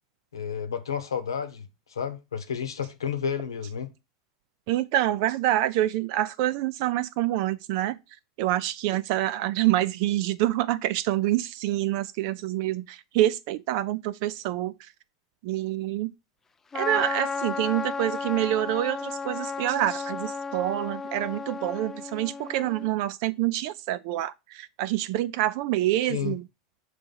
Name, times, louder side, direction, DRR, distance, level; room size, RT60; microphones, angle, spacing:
voice 1, 0.3-3.9 26.1-26.3, left 7 dB, 90° left, 1.0 m, -31 dB
voice 2, 4.7-8.0 8.4-14.9 15.4-16.1 16.7-26.5, right 14 dB, 60° right, 0.3 m, -27 dB
Trumpet, 16.7-22.9, left 5 dB, 20° left, 0.4 m, -33 dB
5.8 x 3.3 x 5.3 m
hypercardioid pair, 95°, 2 cm